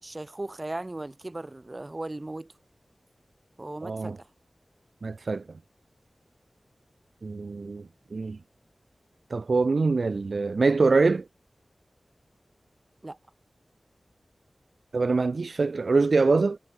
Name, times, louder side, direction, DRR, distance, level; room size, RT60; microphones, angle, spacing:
voice 1, 0.0-2.5 3.6-4.3 13.0-13.2, right 2 dB, 35° right, 6.6 m, -37 dB
voice 2, 3.8-4.2 5.0-5.4 7.2-8.4 9.3-11.2 14.9-16.6, right 4 dB, 70° right, 0.4 m, -24 dB
wide cardioid pair, 55°, 0 cm